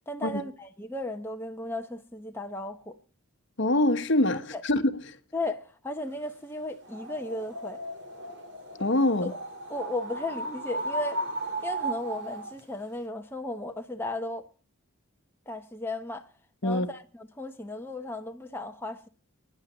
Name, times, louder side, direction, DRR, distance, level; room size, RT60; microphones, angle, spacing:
voice 1, 0.1-3.0 4.3-4.6 5.3-7.8 9.2-9.4 9.7-11.2 11.6-14.5 15.5-16.3 16.6-19.1, left 1 dB, 10° left, 0.9 m, -35 dB
voice 2, 3.6-4.8 5.1-5.2 8.8-9.3 16.6-16.9, left 1 dB, 55° left, 1.1 m, -24 dB
sound 1, 6.8-12.6, right 1 dB, 55° right, 2.6 m, -35 dB
10.5 x 9.0 x 9.1 m
head